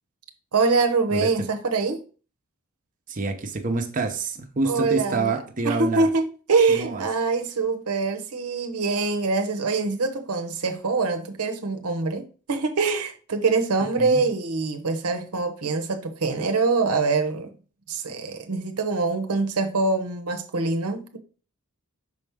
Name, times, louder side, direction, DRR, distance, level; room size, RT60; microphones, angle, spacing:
voice 1, 0.5-2.0 4.6-5.4 5.6-17.5 17.9-21.2, right 4 dB, 85° right, 0.9 m, -24 dB
voice 2, 3.1-6.1 6.7-7.0 14.0-14.2, right 3 dB, 35° right, 0.8 m, -27 dB
6.2 x 4.4 x 3.5 m
head